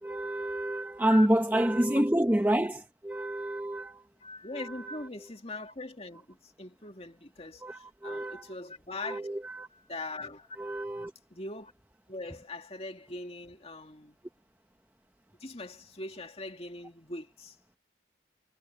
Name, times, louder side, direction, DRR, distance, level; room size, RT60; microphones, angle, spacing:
voice 1, 0.0-4.0 4.5-5.0 7.6-8.5 9.1-9.7 10.6-11.1, right 1 dB, 10° right, 0.8 m, -28 dB
voice 2, 4.2-9.3 9.7-10.6 10.9-11.0 11.3-11.7 12.1-14.2 15.4-17.6, left 2 dB, 30° left, 2.4 m, -41 dB
head